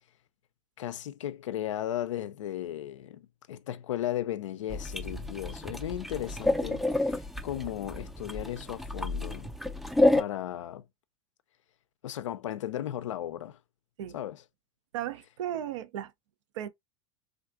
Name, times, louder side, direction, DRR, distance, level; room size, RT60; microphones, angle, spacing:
voice 1, 0.8-9.5 10.1-10.9 12.0-13.6 14.1-14.4, left 12 dB, 80° left, 0.4 m, -36 dB
sound 1, 4.7-10.2, left 2 dB, ahead, 0.4 m, -29 dB
voice 2, 14.9-16.1 16.5-16.7, right 11 dB, 75° right, 0.5 m, -35 dB
3.4 x 2.4 x 2.4 m
hypercardioid pair, 100°, 16 cm